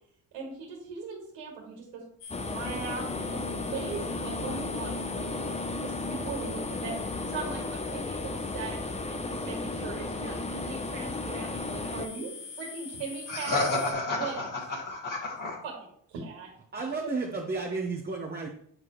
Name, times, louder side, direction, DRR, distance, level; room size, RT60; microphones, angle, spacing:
voice 1, 0.3-1.8 2.3-8.8 9.1-12.3 12.6-13.6 14.1-14.5 15.6-15.7 16.1-16.5 17.0-17.1, right 5 dB, 80° right, 1.9 m, -39 dB
sound 1, 2.2-13.9, left 5 dB, 80° left, 1.3 m, -43 dB
sound 2, 2.3-12.1, left 3 dB, 15° left, 0.7 m, -34 dB
voice 2, 13.3-15.6, left 2 dB, 45° left, 1.8 m, -30 dB
voice 3, 16.7-18.5, right 3 dB, 20° right, 1.1 m, -32 dB
7.9 x 4.7 x 3.1 m
supercardioid pair, 65°, 44 cm